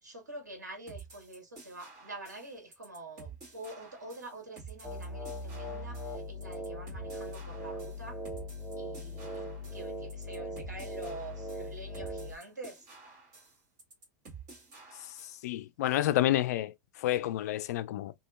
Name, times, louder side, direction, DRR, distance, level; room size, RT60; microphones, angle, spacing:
voice 1, 0.0-8.2 8.8-12.9, right 2 dB, 90° right, 1.4 m, -46 dB
sound 1, 0.9-15.5, right 5 dB, 40° right, 1.8 m, -51 dB
sound 2, 4.8-12.4, equal, ahead, 0.7 m, -40 dB
voice 2, 15.4-18.1, left 14 dB, 65° left, 0.4 m, -29 dB
2.8 x 2.7 x 2.4 m
hypercardioid pair, 100°, 9 cm